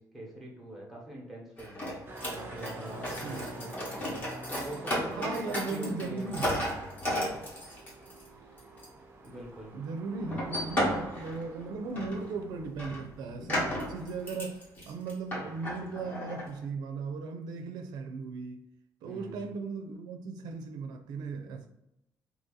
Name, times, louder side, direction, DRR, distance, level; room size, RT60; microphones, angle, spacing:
voice 1, 0.0-1.9 2.3-4.1 4.5-6.3 7.0-7.5 9.2-9.7 19.0-19.5, right 1 dB, ahead, -4 dB, 1.1 m, -44 dB
sound 1, 1.6-8.3 8.6-8.9 9.2-9.3 10.2-11.6 11.9-12.3 12.5-16.6, equal, 30° left, 1.1 m, -35 dB
sound 2, 2.1-12.7, right 2 dB, 30° right, 0.5 m, -47 dB
voice 2, 3.2-3.5 5.1-6.6 9.7-18.6 19.0-21.7, right 4 dB, 90° right, 4 dB, 0.4 m, -37 dB
2.8 x 2.7 x 3.8 m, 0.82 s
cardioid pair, 130°, 7 cm